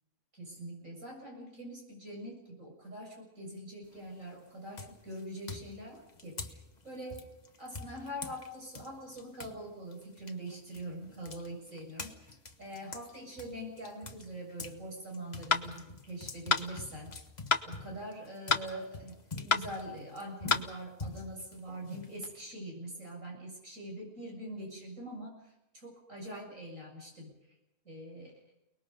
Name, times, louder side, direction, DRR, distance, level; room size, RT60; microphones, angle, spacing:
voice 1, 0.3-7.2 7.6-17.1 17.6-27.4 27.8-28.3, right 1 dB, 65° right, 0 dB, 7.9 m, -44 dB
sound 1, 3.8-4.2 4.7-9.6 9.9-14.8 15.1-22.5, left 3 dB, 30° left, 1.4 m, -46 dB
sound 2, 15.5-15.7 16.5-16.7 17.5-17.7 18.5-18.7 19.5-19.7 20.5-20.7, left 5 dB, 50° left, 1.4 m, -27 dB
29.5 x 20.0 x 5.3 m, 0.91 s
omnidirectional pair, 1.5 m